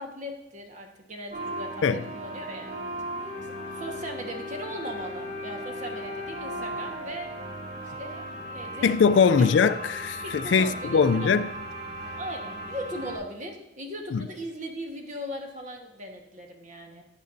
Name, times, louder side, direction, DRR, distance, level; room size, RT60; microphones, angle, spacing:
voice 1, 0.0-2.7 3.7-7.3 8.0-8.2 8.5-9.0 9.4-9.5 10.2-11.5 12.2-17.0, equal, 45° right, 1.3 m, -38 dB
sound 1, 1.3-13.2, equal, 60° right, 2.8 m, -37 dB
voice 2, 8.8-11.5 14.1-14.2, left 5 dB, 80° left, 0.4 m, -21 dB
12.0 x 9.1 x 2.6 m
head